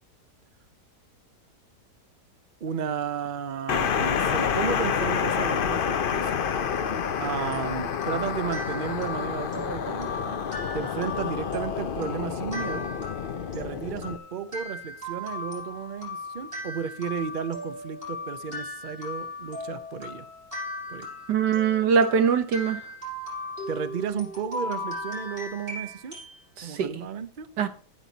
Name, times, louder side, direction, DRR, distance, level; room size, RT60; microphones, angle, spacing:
voice 1, 2.6-6.3 7.0-10.4 10.7-12.9 13.5-20.3 20.9-21.1 23.7-26.2 26.6-27.7, right 7 dB, 50° right, 0.6 m, -33 dB
sound 1, 3.7-14.2, left 7 dB, 55° left, 0.6 m, -28 dB
sound 2, 7.5-26.4, left 1 dB, 30° right, 6.3 m, -37 dB
voice 2, 21.3-22.8 26.6-27.0 27.6-27.7, right 6 dB, 75° right, 1.8 m, -22 dB
13.5 x 7.7 x 4.0 m
omnidirectional pair, 1.8 m